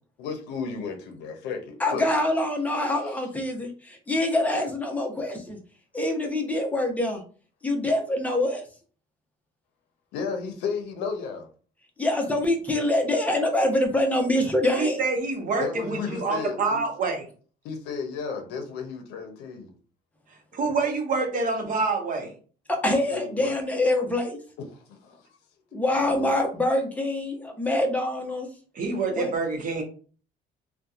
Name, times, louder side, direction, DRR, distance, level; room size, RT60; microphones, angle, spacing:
voice 1, 0.2-2.1 10.1-11.5 15.6-16.8 17.6-19.7 23.1-23.5 24.7-25.2 25.7-26.5, left 5 dB, 85° left, 5 dB, 0.6 m, -34 dB
voice 2, 1.8-5.6 5.9-7.2 7.6-8.6 12.0-15.0 22.7-24.4 25.7-28.5 29.2-29.3, left 1 dB, 10° left, 2 dB, 0.7 m, -25 dB
voice 3, 14.7-17.3 20.5-22.3 28.7-29.8, right 3 dB, 50° right, 3 dB, 0.8 m, -26 dB
2.7 x 2.2 x 2.4 m, 0.40 s
cardioid pair, 110°, 17 cm